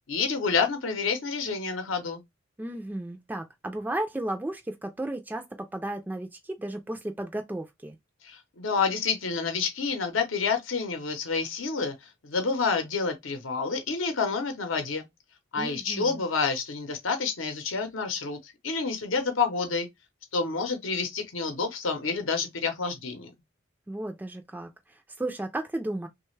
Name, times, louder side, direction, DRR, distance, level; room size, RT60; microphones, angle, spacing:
voice 1, 0.1-2.2 8.2-15.1 15.5-19.9 20.3-23.3, left 4 dB, 80° left, 0.7 m, -29 dB
voice 2, 2.6-8.0 15.6-16.2 23.9-26.1, right 1 dB, 10° right, 0.3 m, -34 dB
3.1 x 2.2 x 3.1 m
head